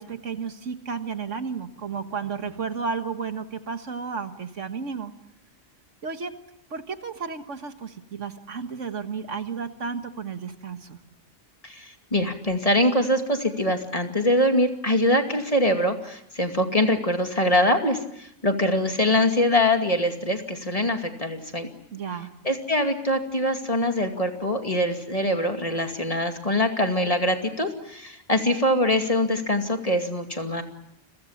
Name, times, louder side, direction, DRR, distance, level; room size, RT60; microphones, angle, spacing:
voice 1, 0.0-5.1 6.0-6.4 6.7-11.0 21.9-22.3, right 5 dB, 75° right, 8 dB, 1.9 m, -33 dB
voice 2, 11.6-21.7 22.4-30.6, left 1 dB, 30° left, 5 dB, 2.4 m, -23 dB
29.5 x 23.5 x 7.3 m, 0.79 s
omnidirectional pair, 1.3 m